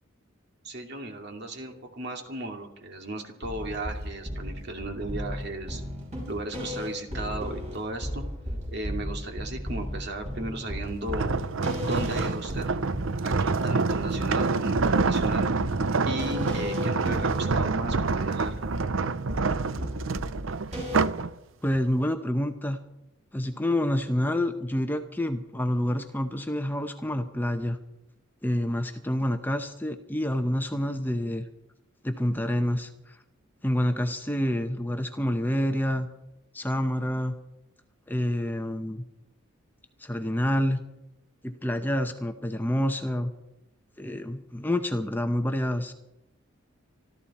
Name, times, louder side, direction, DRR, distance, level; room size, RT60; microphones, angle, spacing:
voice 1, 0.6-5.8 6.2-8.2 8.7-11.3 11.9-12.7 13.2-15.5 16.0-18.6, right 1 dB, 55° right, 3 dB, 2.4 m, -35 dB
sound 1, 3.4-21.0, equal, 35° right, 6.5 m, -35 dB
sound 2, 11.1-21.3 21.7-22.0, right 4 dB, 70° right, 0.6 m, -27 dB
voice 2, 21.6-22.8 23.3-27.8 28.4-31.5 32.0-33.2 33.6-36.1 36.5-37.3 38.1-39.0 40.0-40.8 41.4-43.3 44.0-45.9, left 1 dB, 10° left, 6 dB, 0.8 m, -28 dB
25.0 x 13.5 x 4.3 m, 0.90 s
head